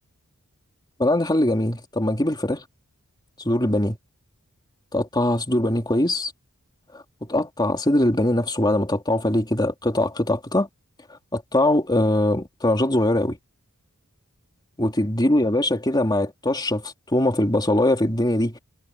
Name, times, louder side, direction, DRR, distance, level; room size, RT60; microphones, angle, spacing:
voice 1, 1.0-2.6 3.4-4.0 4.9-6.3 6.9-10.7 11.3-13.4 14.8-18.6, left 1 dB, 20° left, 3.3 m, -22 dB
head